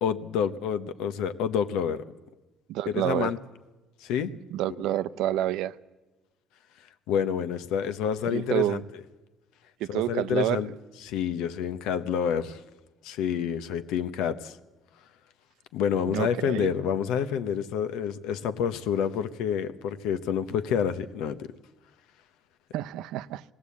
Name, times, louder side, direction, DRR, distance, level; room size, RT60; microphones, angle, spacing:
voice 1, 0.0-2.0 2.9-3.4 4.0-4.3 4.8-4.9 7.1-8.8 9.9-10.7 11.0-12.6 13.0-14.6 15.7-21.5, left 8 dB, 85° left, 0.9 m, -28 dB
voice 2, 2.7-3.3 4.5-5.8 8.3-8.8 9.8-10.6 16.1-16.7 22.7-23.4, right 14 dB, 80° right, 0.6 m, -28 dB
19.0 x 17.0 x 8.4 m
cardioid pair, 150°, 0 cm